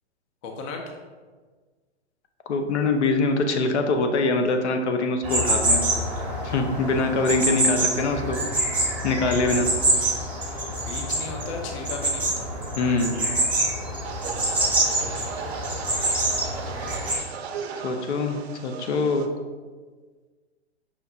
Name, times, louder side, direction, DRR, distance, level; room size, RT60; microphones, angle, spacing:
voice 1, 0.4-0.8 10.8-12.5 16.7-17.0, left 4 dB, 30° left, 2 dB, 0.4 m, -36 dB
voice 2, 2.5-5.8 6.4-8.4 9.0-9.7 12.8-13.2 17.8-19.3, left 3 dB, 75° left, 5 dB, 0.6 m, -23 dB
sound 1, 5.2-17.2, right 1 dB, 5° right, 0.9 m, -26 dB
sound 2, 14.0-19.3, right 6 dB, 65° right, 0.5 m, -36 dB
5.7 x 2.6 x 2.4 m, 1.4 s
hypercardioid pair, 125°, 34 cm